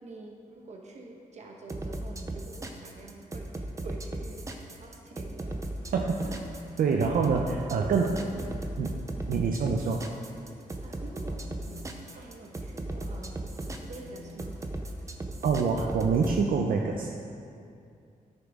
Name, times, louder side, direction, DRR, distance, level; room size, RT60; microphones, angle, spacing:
voice 1, 0.0-5.6 6.2-6.5 7.4-8.0 8.3-8.6 10.8-13.4 13.8-14.6, right 2 dB, 50° right, 0 dB, 1.2 m, -46 dB
sound 1, 1.7-16.4, right 2 dB, 20° right, 0.6 m, -36 dB
sound 2, 5.3-15.4, left 1 dB, 40° left, 1.8 m, -54 dB
voice 2, 6.8-8.1 8.8-8.9 9.3-10.0 15.4-17.1, right 5 dB, 75° right, 1 dB, 0.6 m, -26 dB
13.5 x 6.8 x 3.6 m, 2.5 s
wide cardioid pair, 165°, 15 cm